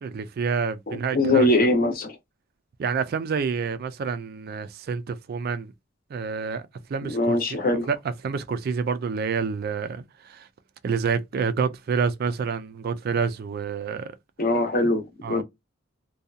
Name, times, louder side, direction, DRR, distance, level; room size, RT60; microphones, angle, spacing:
voice 1, 0.0-1.5 2.8-5.7 6.1-6.6 6.9-8.0 8.2-10.5 10.8-14.2 15.2-15.4, right 5 dB, 50° right, 0.3 m, -28 dB
voice 2, 0.9-2.1 7.0-7.9 14.4-15.4, left 1 dB, 50° left, 0.7 m, -22 dB
2.7 x 2.2 x 2.3 m
head